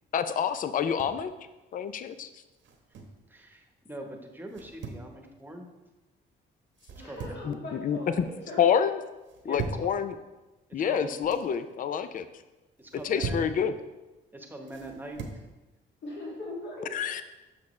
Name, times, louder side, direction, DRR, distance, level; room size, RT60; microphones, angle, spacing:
voice 1, 0.1-1.3 1.7-2.3 7.4-8.3 8.6-9.0 9.4-10.2 10.7-12.2 13.0-13.7 16.9-17.2, left 8 dB, 45° left, 11 dB, 0.4 m, -27 dB
sound 1, 0.7-1.3 2.6-3.2 4.5-5.1 6.8-7.5 7.9-8.4 9.2-9.9 11.0-11.5 12.8-13.5 14.7-15.4, right 4 dB, 70° right, 1.1 m, -39 dB
voice 2, 3.3-5.7 7.0-7.3 9.4-9.7 10.9-11.1 12.8-13.4 14.3-15.2, right 1 dB, 10° right, 2 dB, 1.1 m, -42 dB
voice 3, 7.0-8.6 16.0-16.9, left 1 dB, 60° left, -5 dB, 2.4 m, -40 dB
7.4 x 5.8 x 3.2 m, 1.1 s
cardioid pair, 90°, 20 cm